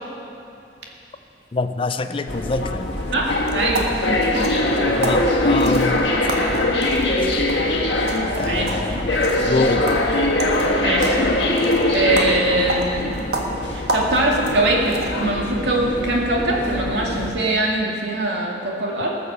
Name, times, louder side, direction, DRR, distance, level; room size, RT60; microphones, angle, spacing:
voice 1, 1.5-2.8 4.9-6.1 8.4-9.2 9.5-10.0, left 3 dB, 30° left, 10 dB, 0.4 m, -25 dB
sound 1, 2.3-17.3, left 1 dB, 85° left, 1.5 m, -22 dB
voice 2, 3.1-4.4 5.1-5.3 8.4-8.8 10.8-11.2 11.6-13.1 13.7-19.2, right 2 dB, 80° right, -2 dB, 2.2 m, -22 dB
sound 2, 3.2-15.4, right 2 dB, 65° right, 1.4 m, -31 dB
19.0 x 6.7 x 6.7 m, 2.7 s
head